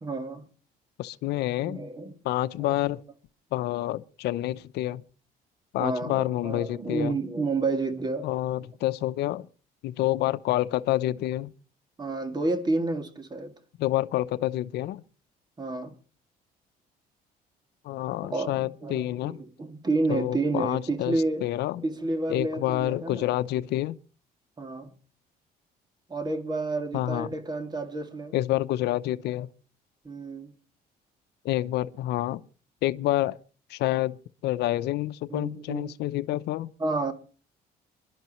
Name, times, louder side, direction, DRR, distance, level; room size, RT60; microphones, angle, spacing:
voice 1, 0.0-0.4 1.6-2.2 2.6-2.7 5.8-8.3 12.0-13.5 15.6-16.0 18.2-21.5 21.8-23.4 24.6-24.9 26.1-28.4 30.0-30.5 35.3-36.0 36.8-37.1, right 3 dB, 25° right, 2.4 m, -30 dB
voice 2, 1.0-1.8 2.2-3.0 3.5-5.0 5.7-7.1 8.2-9.5 9.8-11.5 13.8-15.0 17.8-19.4 20.1-21.8 22.3-24.0 26.9-27.3 28.3-29.5 31.4-32.4 32.8-33.4 33.7-34.2 34.4-36.7, left 15 dB, 80° left, 0.7 m, -28 dB
28.0 x 11.5 x 3.1 m
cardioid pair, 110°, 17 cm